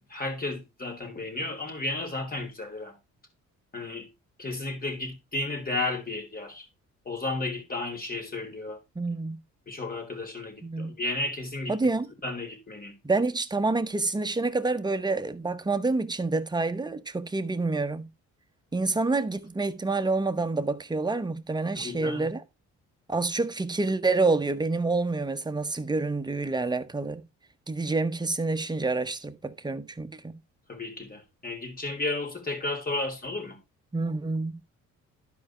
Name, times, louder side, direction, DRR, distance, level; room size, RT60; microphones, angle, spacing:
voice 1, 0.0-3.0 3.7-4.1 4.4-6.7 7.1-8.8 9.7-11.8 12.2-12.9 21.7-22.3 30.7-33.6, left 2 dB, 30° left, 3.6 m, -33 dB
voice 2, 8.9-9.4 10.6-10.9 11.7-12.1 13.0-18.1 18.7-22.4 23.1-27.2 27.7-30.4 33.9-34.5, right 3 dB, 15° right, 1.0 m, -28 dB
11.5 x 5.0 x 4.3 m
cardioid pair, 90°, 30 cm